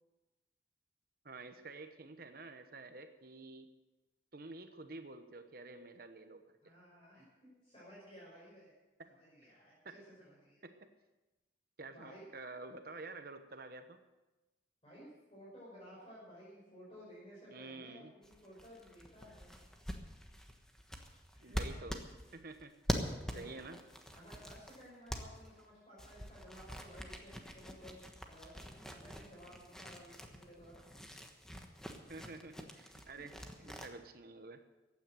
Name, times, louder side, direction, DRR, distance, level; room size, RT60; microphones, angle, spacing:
voice 1, 1.2-3.7 4.3-6.7 9.0-9.1 9.8-9.9 10.6-10.8 11.8-14.0 17.5-18.1 21.4-22.0 22.3-22.7 23.3-23.8 32.1-34.6, right 3 dB, 50° right, 8 dB, 1.0 m, -49 dB
voice 2, 6.6-8.7 9.0-10.6 11.9-12.3 14.8-19.7 21.3-21.8 23.2-23.5 24.1-30.8 33.6-33.8, equal, 30° left, -8 dB, 5.9 m, -56 dB
sound 1, 18.2-25.7 26.0-33.9, equal, 5° left, 1.2 m, -44 dB
15.0 x 9.6 x 7.7 m, 1.1 s
head